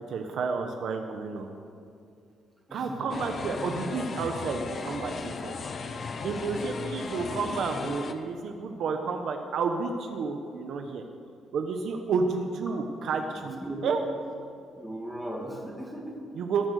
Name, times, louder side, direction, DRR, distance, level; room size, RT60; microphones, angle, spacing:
voice 1, 0.1-1.5 2.7-5.6 6.2-11.0 11.5-14.0 16.4-16.7, right 4 dB, 55° right, 5 dB, 1.2 m, -31 dB
voice 2, 2.7-3.1 13.1-13.2 13.6-13.9 14.8-16.3, right 1 dB, ahead, -1 dB, 2.5 m, -37 dB
sound 1, 3.1-8.1, left 4 dB, 35° left, 0.8 m, -36 dB
20.0 x 10.5 x 6.6 m, 2.4 s
cardioid pair, 165°, 0 cm